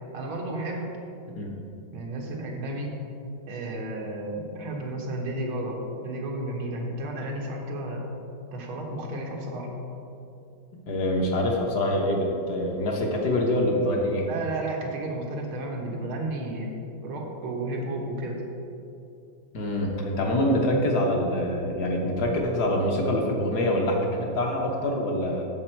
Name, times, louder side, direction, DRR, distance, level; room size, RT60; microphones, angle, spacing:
voice 1, 0.1-0.9 1.9-3.0 3.5-8.0 8.5-9.7 14.3-16.7 17.0-18.4, right 1 dB, 90° right, 0 dB, 2.1 m, -32 dB
voice 2, 10.9-14.3 19.5-25.4, left 1 dB, 60° left, 0 dB, 1.4 m, -25 dB
8.3 x 7.0 x 4.5 m, 2.7 s
omnidirectional pair, 2.2 m